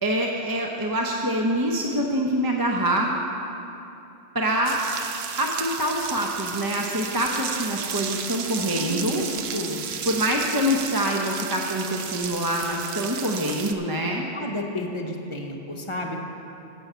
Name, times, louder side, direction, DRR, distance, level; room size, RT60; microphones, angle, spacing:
voice 1, 0.0-3.1 4.3-4.8 5.4-9.2 10.0-14.3, equal, 20° right, -1 dB, 0.8 m, -25 dB
sound 1, 4.6-13.7, right 7 dB, 65° right, 0.9 m, -33 dB
voice 2, 8.7-9.8 14.3-16.3, left 1 dB, 25° left, 1 dB, 1.1 m, -32 dB
15.5 x 6.4 x 6.9 m, 2.9 s
omnidirectional pair, 1.2 m